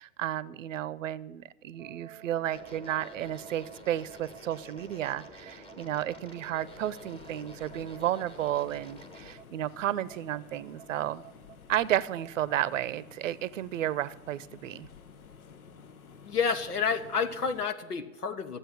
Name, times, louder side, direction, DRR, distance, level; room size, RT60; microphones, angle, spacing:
voice 1, 0.0-11.2 11.7-14.9, right 12 dB, 55° right, 19 dB, 0.8 m, -32 dB
sound 1, 1.7-12.6, right 12 dB, 15° right, 1.0 m, -52 dB
sound 2, 2.5-9.3, left 1 dB, 10° left, 1.4 m, -50 dB
sound 3, 6.6-17.6, left 6 dB, 65° left, 1.2 m, -53 dB
voice 2, 16.2-18.6, left 5 dB, 85° left, 11 dB, 1.4 m, -30 dB
13.5 x 7.9 x 9.5 m, 1.1 s
figure-of-eight pair, 110°, 45 cm